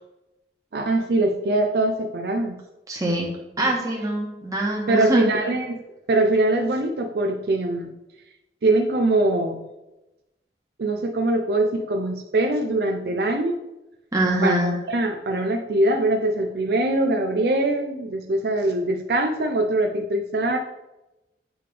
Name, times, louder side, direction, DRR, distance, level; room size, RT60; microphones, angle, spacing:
voice 1, 0.7-2.6 4.9-5.8 6.1-7.9 8.6-9.6 10.8-13.5 14.4-14.6 14.9-20.6, right 2 dB, 60° right, 4 dB, 0.4 m, -22 dB
voice 2, 2.9-3.3 3.6-5.3 14.1-14.8, right 1 dB, 20° right, -2 dB, 1.2 m, -24 dB
8.6 x 3.3 x 3.3 m, 0.96 s
head